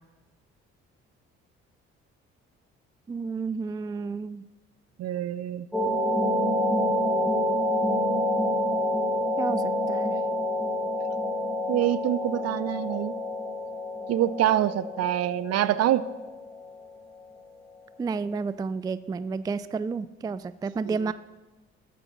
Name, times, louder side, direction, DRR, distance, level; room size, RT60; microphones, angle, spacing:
voice 1, 3.1-4.5 9.4-10.2 18.0-21.1, right 4 dB, 15° right, 15 dB, 0.3 m, -31 dB
voice 2, 5.0-5.7 11.7-13.1 14.1-16.0 20.8-21.1, right 12 dB, 55° right, 16 dB, 0.6 m, -25 dB
sound 1, 5.7-17.2, left 1 dB, ahead, 2.0 m, -28 dB
13.0 x 7.2 x 4.0 m, 1.1 s
hypercardioid pair, 55°, 30 cm